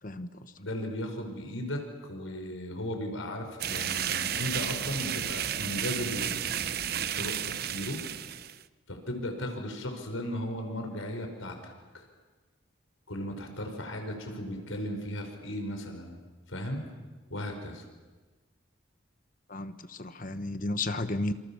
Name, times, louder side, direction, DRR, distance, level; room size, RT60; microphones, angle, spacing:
voice 1, 0.0-0.5 19.5-21.3, left 2 dB, 40° left, 10 dB, 1.2 m, -33 dB
voice 2, 0.6-1.8 2.1-8.0 8.9-12.0 13.1-16.1 16.5-16.8 17.3-17.9, left 1 dB, 80° left, 4 dB, 5.2 m, -36 dB
sound 1, 3.6-8.6, right 9 dB, 50° right, 0.8 m, -32 dB
28.0 x 27.5 x 7.3 m, 1.3 s
head